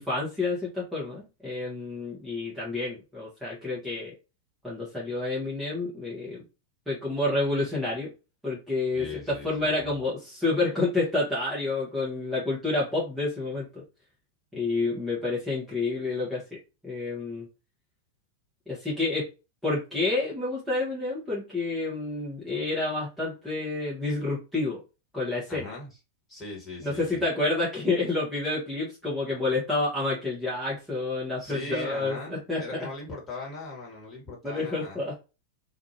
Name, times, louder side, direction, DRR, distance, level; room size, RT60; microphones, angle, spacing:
voice 1, 0.0-4.1 4.6-6.4 6.9-8.1 8.4-13.8 14.5-16.4 16.8-17.4 18.7-19.3 19.6-24.8 25.1-25.7 26.8-32.8 34.4-35.2, left 2 dB, 5° right, -7 dB, 1.1 m, -29 dB
voice 2, 8.9-9.7 25.5-25.9 26.3-27.2 31.4-35.0, left 2 dB, 15° left, -4 dB, 1.5 m, -39 dB
2.6 x 2.4 x 2.7 m, 0.28 s
figure-of-eight pair, 90°, 0 cm